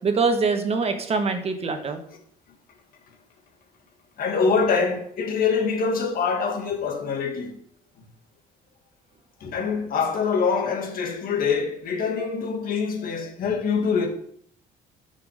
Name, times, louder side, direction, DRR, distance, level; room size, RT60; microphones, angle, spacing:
voice 1, 0.0-2.0, right 4 dB, 35° right, 1.2 m, -24 dB
voice 2, 4.2-7.6 9.4-14.1, left 5 dB, 60° left, 1.8 m, -24 dB
6.1 x 6.0 x 5.0 m
cardioid pair, 110°, 17 cm